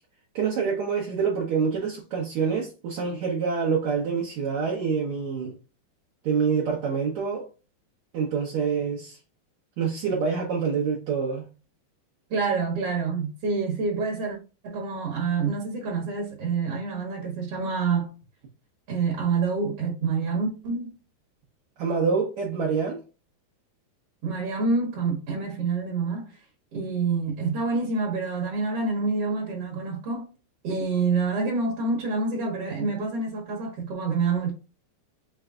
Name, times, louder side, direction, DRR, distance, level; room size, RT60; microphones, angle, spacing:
voice 1, 0.3-5.5 6.2-7.5 8.1-9.2 9.8-11.4 21.8-23.0, right 5 dB, 75° right, 1.6 m, -26 dB
voice 2, 12.3-14.4 14.6-18.1 18.9-20.9 24.2-26.4 26.7-30.3 30.6-34.5, right 4 dB, 60° right, 1.6 m, -27 dB
6.1 x 3.3 x 2.5 m
omnidirectional pair, 4.8 m